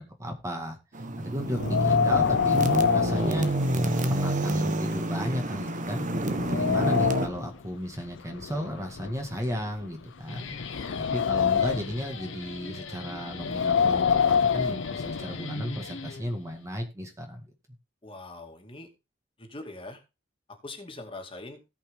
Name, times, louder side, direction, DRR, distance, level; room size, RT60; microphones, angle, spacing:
voice 1, 0.2-0.8 1.2-2.6 2.9-6.1 6.5-17.5, equal, 15° right, 3 dB, 2.0 m, -34 dB
sound 1, 0.9-7.3, right 1 dB, 45° right, 1.2 m, -28 dB
Wind, 1.5-4.1 4.5-4.6 5.3-5.4 5.9-7.5 8.3-9.9 10.4-12.0 13.3-15.4, left 6 dB, 70° left, 0.5 m, -26 dB
Guitar, 10.0-16.7, left 3 dB, 90° left, 1.5 m, -40 dB
voice 2, 10.7-11.1 18.0-18.9 19.4-20.0 20.5-21.6, left 2 dB, 30° left, 4 dB, 2.4 m, -42 dB
17.5 x 5.8 x 3.7 m, 0.27 s
head